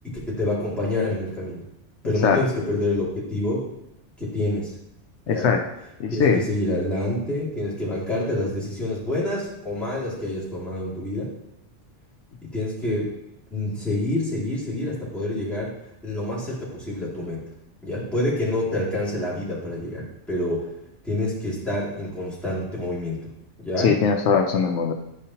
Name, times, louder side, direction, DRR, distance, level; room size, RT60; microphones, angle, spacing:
voice 1, 0.0-1.7 2.0-3.7 4.2-4.7 5.3-5.5 6.1-11.3 12.4-13.1 13.5-15.7 16.0-17.4 17.8-20.7 21.0-23.3 23.6-23.9, left 1 dB, ahead, -8 dB, 2.3 m, -27 dB
voice 2, 5.3-5.6 6.0-6.4 23.8-24.9, left 6 dB, 75° left, 4 dB, 0.9 m, -20 dB
9.6 x 5.1 x 2.8 m, 0.86 s
omnidirectional pair, 1.2 m